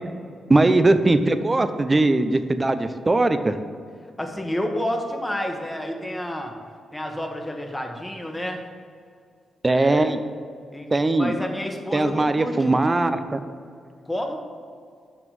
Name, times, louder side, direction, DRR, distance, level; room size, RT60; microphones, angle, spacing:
voice 1, 0.5-3.6 9.6-10.2 10.9-11.3 11.9-13.4, right 2 dB, 30° right, 10 dB, 0.7 m, -20 dB
voice 2, 4.2-6.5 6.9-8.6 9.7-10.1 10.7-12.8 14.0-14.4, left 1 dB, 10° left, 3 dB, 1.4 m, -30 dB
6.1 x 6.0 x 7.0 m, 2.2 s
supercardioid pair, 55°, 0 cm